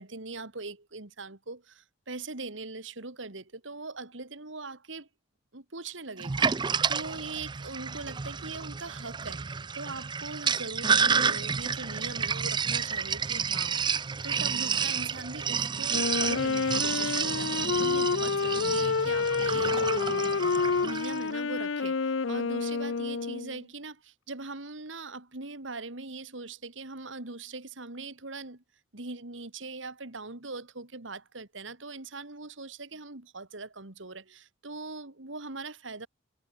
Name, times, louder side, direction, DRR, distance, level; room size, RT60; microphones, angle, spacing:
voice 1, 0.0-5.1 5.5-28.6 28.9-36.1, right 3 dB, 70° right, 2.5 m, -41 dB
Sink (filling or washing), 6.2-21.2, right 6 dB, 25° right, 0.5 m, -30 dB
Wind instrument woodwind instrument, 15.9-23.6, left 4 dB, 75° left, 0.7 m, -28 dB
head